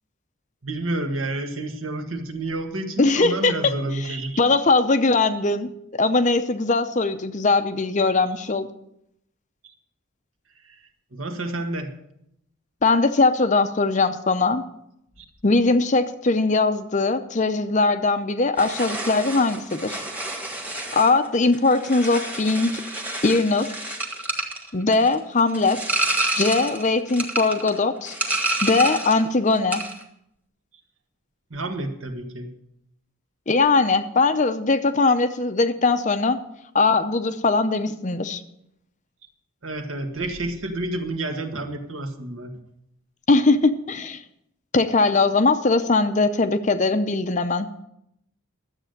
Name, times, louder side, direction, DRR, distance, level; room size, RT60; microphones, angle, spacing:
voice 1, 0.6-4.4 11.1-11.9 15.2-15.3 31.5-32.5 39.6-42.5, right 2 dB, 65° right, 4 dB, 1.6 m, -29 dB
voice 2, 3.0-8.7 12.8-14.6 15.4-20.0 20.9-22.8 23.2-23.7 24.7-25.8 26.4-28.2 28.6-29.8 33.5-36.4 36.7-38.4 43.3-44.2 44.7-47.7, left 3 dB, 35° left, 10 dB, 0.6 m, -20 dB
sound 1, 18.6-29.3 29.5-30.0, right 2 dB, 5° right, 1.5 m, -29 dB
12.5 x 8.1 x 6.6 m, 0.78 s
head